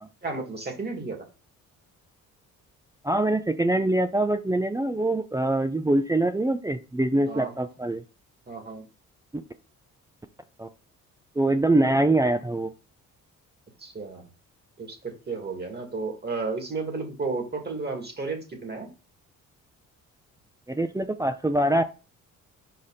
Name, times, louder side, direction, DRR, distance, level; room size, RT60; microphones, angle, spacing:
voice 1, 0.2-1.2 7.3-7.5 8.5-8.8 13.8-14.3 14.8-18.9, right 3 dB, 30° right, 3 dB, 2.5 m, -33 dB
voice 2, 3.0-8.0 10.6-10.7 11.4-12.7 20.7-21.8, right 1 dB, 10° right, 9 dB, 0.6 m, -24 dB
5.8 x 4.9 x 4.1 m, 0.32 s
cardioid pair, 90°, 32 cm